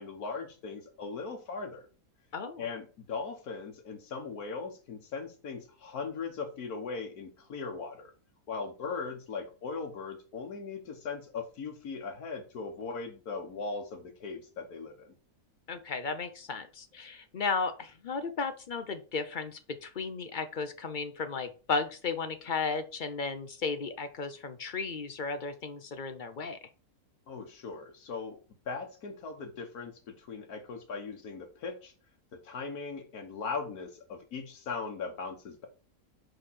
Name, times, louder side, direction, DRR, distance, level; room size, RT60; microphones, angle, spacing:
voice 1, 0.0-1.8 2.6-8.1 8.5-15.1 27.3-28.4 28.6-31.9 32.3-35.7, left 4 dB, 80° left, 5 dB, 1.7 m, -39 dB
voice 2, 2.3-2.7 15.7-26.6, left 4 dB, 55° left, 9 dB, 0.5 m, -34 dB
5.1 x 4.9 x 4.2 m, 0.36 s
omnidirectional pair, 1.5 m